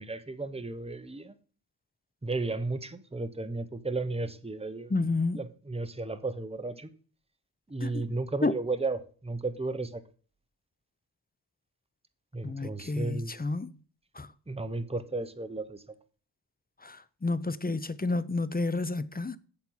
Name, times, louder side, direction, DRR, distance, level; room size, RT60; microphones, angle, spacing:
voice 1, 0.0-1.3 2.2-4.9 5.3-6.9 7.7-10.0 12.3-13.3 14.5-15.8, right 3 dB, 15° right, 0.9 m, -34 dB
voice 2, 4.9-5.4 7.8-8.0 8.4-8.5 12.4-13.7 14.2-14.3 16.8-19.4, left 3 dB, 20° left, 0.6 m, -30 dB
7.8 x 7.2 x 5.6 m
wide cardioid pair, 60°, 43 cm